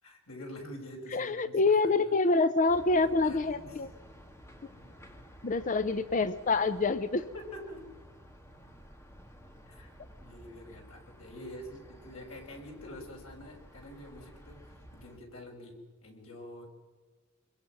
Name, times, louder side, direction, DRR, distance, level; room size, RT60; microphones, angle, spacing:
voice 1, 0.0-2.1 3.0-3.7 7.3-7.9 9.7-9.9 10.2-16.7, left 1 dB, 85° left, 1 dB, 5.8 m, -46 dB
voice 2, 1.1-3.9 5.4-7.3, left 3 dB, 40° left, 13 dB, 0.6 m, -26 dB
sound 1, 2.7-15.2, equal, 15° left, 1.9 m, -53 dB
25.5 x 22.0 x 6.0 m, 1.4 s
head